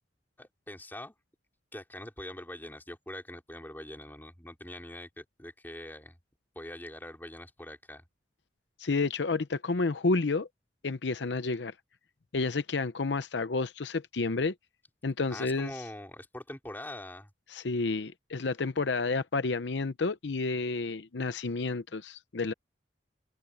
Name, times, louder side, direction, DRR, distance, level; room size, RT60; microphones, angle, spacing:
voice 1, 0.4-1.1 1.7-6.2 6.5-8.0 15.3-17.3, left 1 dB, 10° left, 3.5 m, -43 dB
voice 2, 8.8-10.5 10.8-11.7 12.3-14.5 15.0-15.7 17.5-22.5, left 3 dB, 70° left, 0.7 m, -30 dB
head